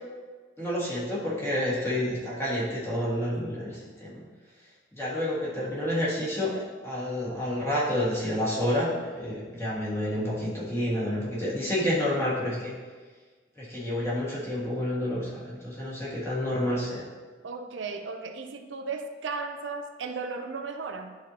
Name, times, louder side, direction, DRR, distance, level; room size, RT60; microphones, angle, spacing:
voice 1, 0.6-4.2 4.9-6.5 6.8-12.7 13.6-17.1, left 1 dB, 15° left, -7 dB, 1.7 m, -29 dB
voice 2, 17.4-21.2, right 4 dB, 75° right, 6 dB, 0.5 m, -35 dB
10.0 x 4.3 x 2.9 m, 1.4 s
head